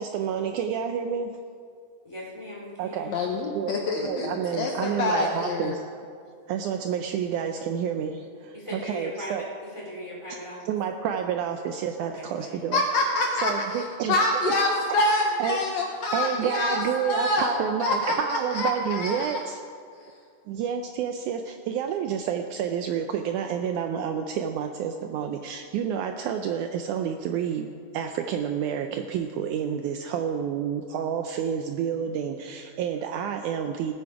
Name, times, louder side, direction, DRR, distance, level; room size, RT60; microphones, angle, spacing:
voice 1, 0.0-1.3 2.8-3.1 3.5-5.8 6.5-9.4 10.7-12.8 13.4-14.2 14.5-14.6 14.9-15.0 15.4-15.6 16.1-19.6 20.5-33.9, right 8 dB, 80° right, 6 dB, 1.9 m, -29 dB
voice 2, 2.0-3.1 8.5-10.6 12.0-12.7, equal, 10° left, -5 dB, 2.9 m, -39 dB
voice 3, 3.1-5.8 12.7-13.8 14.1-19.4, left 2 dB, 65° left, 1 dB, 1.9 m, -26 dB
18.0 x 9.4 x 4.8 m, 2.2 s
omnidirectional pair, 3.9 m